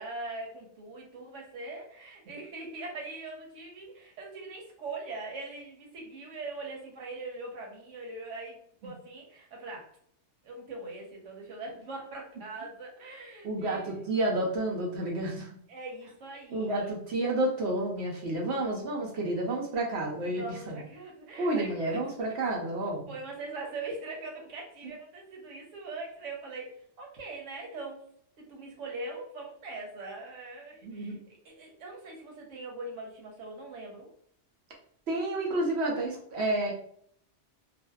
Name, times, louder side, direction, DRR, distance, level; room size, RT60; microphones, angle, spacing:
voice 1, 0.0-8.6 8.8-9.9 10.4-13.9 15.7-16.9 20.2-22.0 23.1-28.1 28.4-31.2 31.4-34.1, right 3 dB, 85° right, 0 dB, 1.0 m, -41 dB
voice 2, 13.4-15.5 16.5-20.8 21.3-23.1 30.8-31.2 35.1-36.7, right 1 dB, 70° right, -1 dB, 0.9 m, -30 dB
2.5 x 2.1 x 2.2 m, 0.65 s
omnidirectional pair, 1.2 m